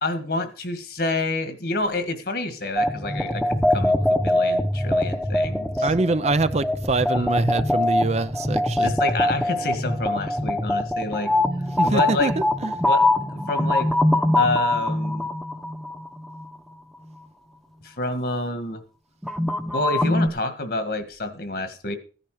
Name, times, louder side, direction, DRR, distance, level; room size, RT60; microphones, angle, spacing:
voice 1, 0.0-5.9 7.1-7.3 8.8-11.3 11.8-12.3 12.8-13.9 14.4-15.3 17.8-18.8 19.7-22.0, left 2 dB, 60° left, 1.9 m, -28 dB
sound 1, 2.8-16.5 19.2-20.3, left 1 dB, ahead, 1.0 m, -23 dB
voice 2, 5.8-8.9 11.7-12.7, right 2 dB, 40° right, 0.6 m, -24 dB
15.5 x 10.0 x 5.0 m
head